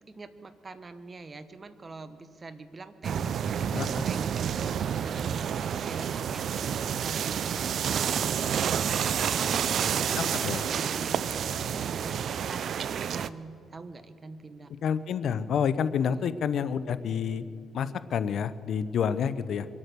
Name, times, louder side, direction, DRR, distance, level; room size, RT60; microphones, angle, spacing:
voice 1, 0.1-14.7 16.0-16.2, right 3 dB, 30° right, 12 dB, 1.0 m, -45 dB
sound 1, 3.0-13.3, right 8 dB, 60° right, 0.4 m, -29 dB
voice 2, 10.2-10.6 14.8-17.4 17.7-19.7, left 7 dB, 65° left, 14 dB, 0.6 m, -28 dB
24.0 x 8.9 x 6.7 m, 2.9 s
cardioid pair, 90°, 0 cm